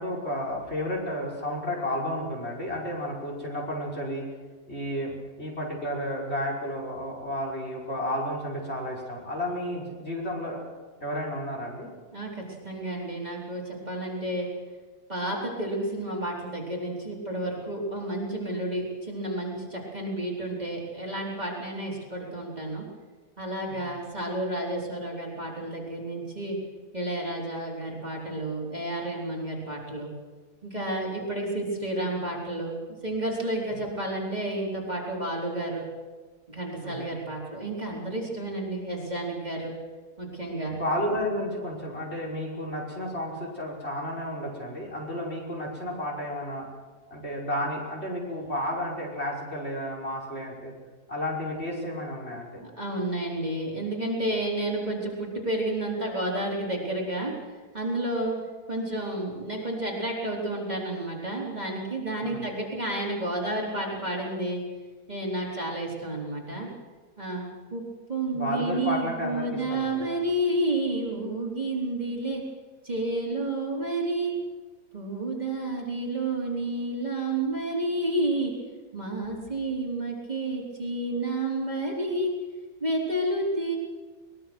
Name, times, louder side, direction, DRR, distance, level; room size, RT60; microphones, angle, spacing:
voice 1, 0.0-4.3 4.7-5.1 5.4-10.6 11.0-11.9 23.7-23.9 33.7-33.8 36.8-37.1 40.7-46.7 47.1-50.7 51.1-52.6 62.2-62.5 68.3-70.1, left 1 dB, 40° left, -2 dB, 6.1 m, -32 dB
voice 2, 12.1-14.5 15.1-22.8 23.4-26.6 26.9-30.1 30.6-32.8 33.0-35.8 36.5-39.7 40.2-40.7 52.6-57.3 57.7-58.4 58.7-64.6 65.1-66.7 67.2-67.4 67.7-67.8 68.1-72.4 72.8-74.3 74.9-78.5 78.9-82.3 82.8-83.8, right 1 dB, 25° right, -3 dB, 4.4 m, -30 dB
23.0 x 21.5 x 6.3 m, 1.4 s
omnidirectional pair, 1.7 m